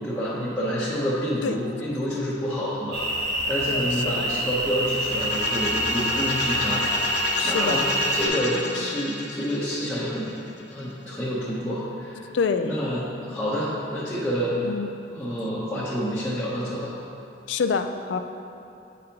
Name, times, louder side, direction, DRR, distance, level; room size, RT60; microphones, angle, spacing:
voice 1, 0.0-3.1 3.5-6.9 7.4-7.8 8.1-10.4 10.7-12.3 12.6-14.6 15.1-16.9, equal, 5° left, -11 dB, 0.8 m, -28 dB
sound 1, 2.9-8.3, right 1 dB, 55° right, 1.3 m, -27 dB
voice 2, 3.7-4.3 7.4-7.8 12.3-12.7 14.6-14.9 17.5-18.2, left 5 dB, 80° left, 7 dB, 0.4 m, -26 dB
sound 2, 5.0-10.8, left 3 dB, 60° left, 0.8 m, -30 dB
9.0 x 5.2 x 2.9 m, 2.8 s
head